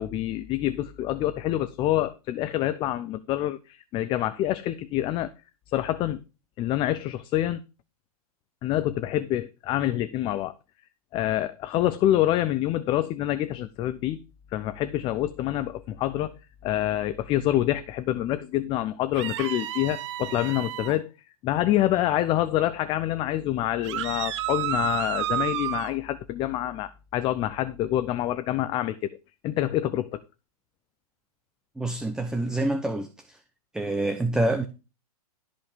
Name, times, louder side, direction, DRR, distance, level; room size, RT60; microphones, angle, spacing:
voice 1, 0.0-5.3 5.7-6.2 6.6-7.6 8.6-10.5 11.1-14.2 14.5-16.3 16.6-21.1 21.4-29.1 29.4-30.2, left 13 dB, 25° left, 0.6 m, -26 dB
sound 1, 19.2-21.0 23.8-25.9, right 12 dB, 50° right, 0.9 m, -31 dB
voice 2, 31.8-33.4 33.7-34.6, right 1 dB, 5° right, 0.9 m, -27 dB
13.5 x 5.3 x 5.2 m
hypercardioid pair, 115°, 20 cm